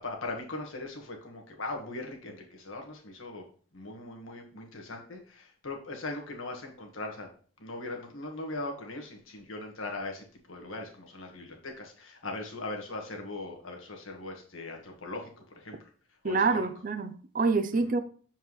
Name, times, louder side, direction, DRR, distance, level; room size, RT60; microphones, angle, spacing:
voice 1, 0.0-3.5 3.7-7.3 7.6-15.9 16.2-16.7 17.8-17.9, left 2 dB, 75° left, 1.5 m, -40 dB
voice 2, 16.2-18.0, right 4 dB, 40° right, 0.5 m, -27 dB
7.2 x 4.5 x 3.1 m
head